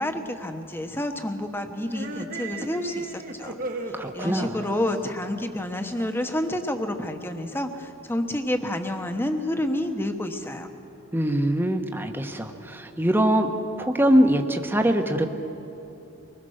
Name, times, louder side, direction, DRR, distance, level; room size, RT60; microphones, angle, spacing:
voice 1, 0.0-3.6 3.8-10.7, left 1 dB, 10° left, 6 dB, 1.2 m, -29 dB
sound 1, 1.9-6.5, right 2 dB, 45° right, 1.3 m, -36 dB
voice 2, 3.9-4.6 11.1-13.5 13.8-15.3, equal, 10° right, 5 dB, 1.1 m, -23 dB
24.0 x 20.5 x 6.5 m, 3.0 s
head